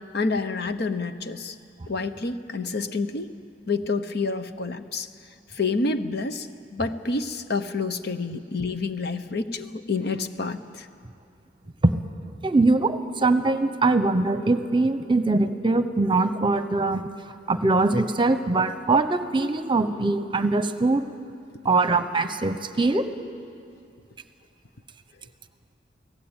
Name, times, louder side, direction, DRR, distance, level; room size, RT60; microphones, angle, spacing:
voice 1, 0.1-1.5 1.9-3.3 3.7-5.1 5.5-10.9, left 3 dB, 60° left, 10 dB, 1.0 m, -28 dB
voice 2, 12.4-17.0 17.5-21.0 21.6-23.1, right 3 dB, 25° right, 10 dB, 1.0 m, -22 dB
28.5 x 17.5 x 9.0 m, 2.4 s
head